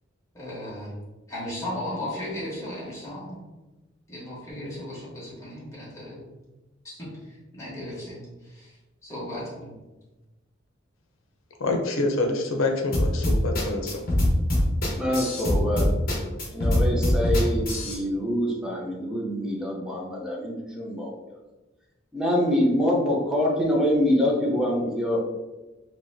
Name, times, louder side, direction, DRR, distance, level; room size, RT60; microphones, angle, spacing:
voice 1, 0.3-1.0 1.3-3.4 4.1-6.2 7.0-7.1 7.5-8.8 9.0-9.8, left 1 dB, 15° left, -8 dB, 1.4 m, -36 dB
voice 2, 11.6-14.0, left 2 dB, 85° left, 3 dB, 0.6 m, -26 dB
sound 1, 12.9-18.0, left 1 dB, 50° left, 1.1 m, -23 dB
voice 3, 14.9-15.9 16.5-21.1 22.1-25.2, equal, 5° right, -3 dB, 0.7 m, -25 dB
4.1 x 2.9 x 2.7 m, 1.1 s
head